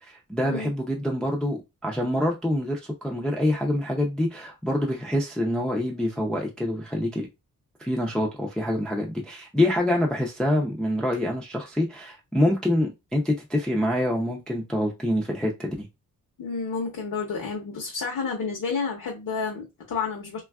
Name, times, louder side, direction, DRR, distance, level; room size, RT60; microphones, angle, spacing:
voice 1, 0.0-7.3 7.8-15.9, left 1 dB, ahead, 0.3 m, -26 dB
voice 2, 16.4-20.4, left 5 dB, 65° left, 0.7 m, -30 dB
3.3 x 2.3 x 2.2 m
wide cardioid pair, 175°, 35 cm